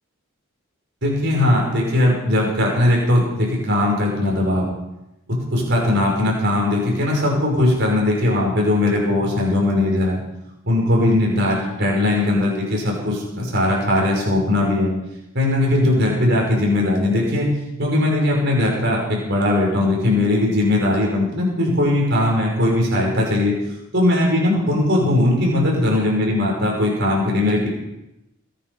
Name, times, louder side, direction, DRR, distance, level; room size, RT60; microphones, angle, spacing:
voice 1, 1.0-4.7 5.3-10.2 10.6-14.9 15.3-17.5 17.8-23.5 23.9-27.7, left 1 dB, 50° right, -2 dB, 5.9 m, -19 dB
22.0 x 10.0 x 5.6 m, 0.91 s
head